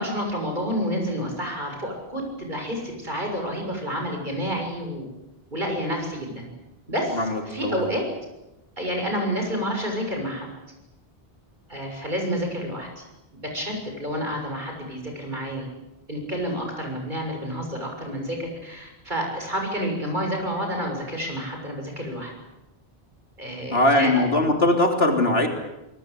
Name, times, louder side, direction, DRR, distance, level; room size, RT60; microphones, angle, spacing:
voice 1, 0.0-5.1 5.5-6.5 6.9-8.0 8.8-10.5 11.7-13.0 13.5-15.7 16.1-22.3 23.4-24.2, equal, 50° right, 2 dB, 7.0 m, -29 dB
voice 2, 7.1-7.9 23.7-25.5, left 1 dB, 75° left, 3 dB, 3.7 m, -21 dB
27.5 x 19.0 x 8.4 m, 0.94 s
omnidirectional pair, 1.0 m